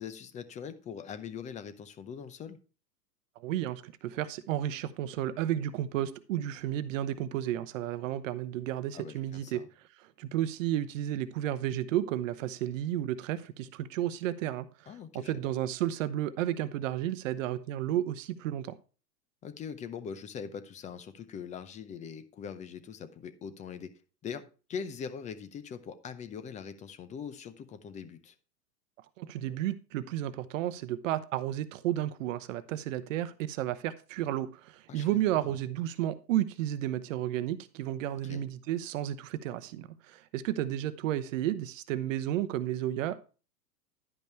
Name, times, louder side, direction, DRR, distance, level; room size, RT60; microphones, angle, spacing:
voice 1, 0.0-2.6 8.9-9.7 14.9-15.5 19.4-23.9 24.2-24.4 24.7-28.3 34.9-35.6 38.2-38.5, left 7 dB, 15° left, 0.6 m, -42 dB
voice 2, 3.4-9.7 10.2-18.7 29.2-43.2, right 12 dB, 50° right, 0.9 m, -32 dB
11.0 x 5.3 x 4.4 m
hypercardioid pair, 125°, 49 cm